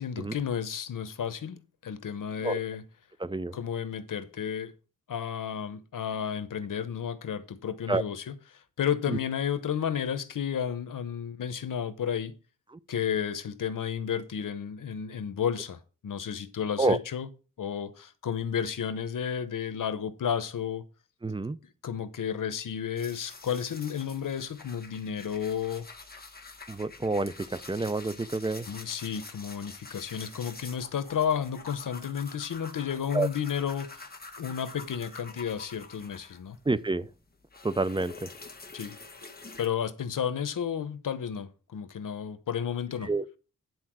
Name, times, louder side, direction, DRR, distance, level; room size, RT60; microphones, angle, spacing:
voice 1, 0.0-2.8 3.5-4.7 5.1-8.3 8.8-12.3 12.9-17.3 17.6-20.8 21.8-25.9 28.7-34.1 34.4-36.6 38.7-39.0 39.6-43.1, left 8 dB, 85° left, 0.9 m, -32 dB
voice 2, 3.2-3.6 7.9-8.0 9.1-9.2 16.8-17.0 21.2-21.6 26.7-28.7 33.1-33.3 36.7-37.1 37.6-38.3 43.0-43.3, right 3 dB, 15° right, 0.6 m, -28 dB
sound 1, 23.0-36.7 37.0-39.7, left 3 dB, 30° left, 1.6 m, -47 dB
9.8 x 4.5 x 6.0 m
wide cardioid pair, 75°, 31 cm